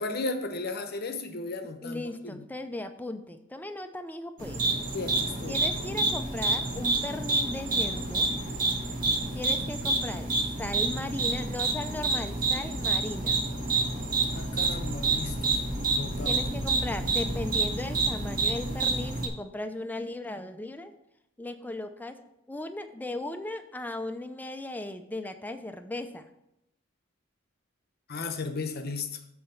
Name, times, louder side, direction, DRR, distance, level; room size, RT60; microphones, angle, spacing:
voice 1, 0.0-2.4 4.9-5.6 9.6-9.8 14.3-15.6 15.9-16.4 28.1-29.2, left 3 dB, 50° left, 8 dB, 0.8 m, -35 dB
voice 2, 1.8-4.7 5.5-8.3 9.3-10.3 10.6-13.4 16.2-20.9 21.4-22.2 22.5-26.3, left 2 dB, 10° left, 8 dB, 0.5 m, -37 dB
sound 1, 4.4-19.3, right 3 dB, 45° right, 1.5 m, -28 dB
7.7 x 4.3 x 6.9 m, 0.82 s
head